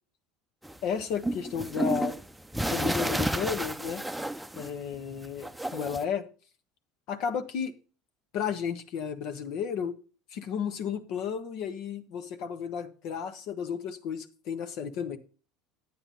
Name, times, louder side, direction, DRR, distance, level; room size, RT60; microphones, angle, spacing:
sound 1, 0.6-5.0 5.2-6.0, right 1 dB, 5° right, 0.7 m, -31 dB
voice 1, 0.8-2.1 2.7-4.0 4.5-6.2 7.1-7.7 8.3-10.0 10.3-15.2, left 7 dB, 65° left, 1.3 m, -33 dB
9.9 x 8.8 x 3.9 m
hypercardioid pair, 80°, 0 cm